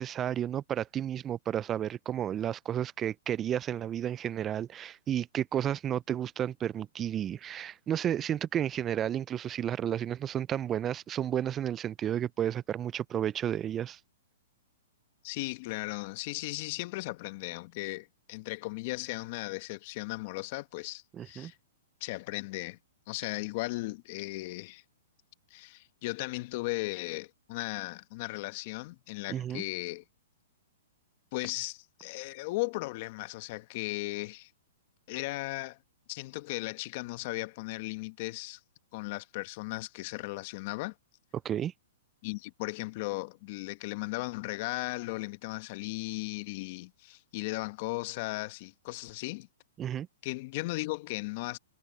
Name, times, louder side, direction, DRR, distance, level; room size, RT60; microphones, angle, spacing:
voice 1, 0.0-14.0 21.2-21.5 29.3-29.6 41.4-41.7 49.8-50.1, right 10 dB, 20° right, 0.3 m, -32 dB
voice 2, 15.2-21.5 22.0-22.8 23.1-24.8 25.5-30.0 31.3-34.5 35.1-35.8 36.1-38.6 38.9-40.9 42.2-49.5 50.2-51.6, left 22 dB, 45° left, 1.4 m, -36 dB
hypercardioid pair, 130°, 0 cm